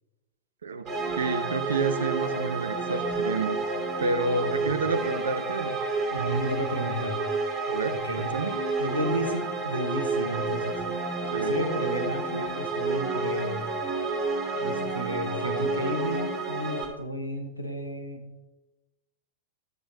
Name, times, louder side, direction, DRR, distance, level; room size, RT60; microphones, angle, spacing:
voice 1, 0.6-3.6 4.0-5.8 7.7-8.6 11.3-11.6, right 3 dB, 70° right, 10 dB, 0.8 m, -29 dB
sound 1, 0.8-16.8, right 3 dB, 30° right, 2.8 m, -30 dB
voice 2, 4.4-4.7 6.1-7.6 7.9-8.2 8.8-10.8 11.3-13.7 14.6-18.4, right 1 dB, 85° left, 4 dB, 1.3 m, -32 dB
13.5 x 7.7 x 2.8 m, 1.1 s
figure-of-eight pair, 90°, 0 cm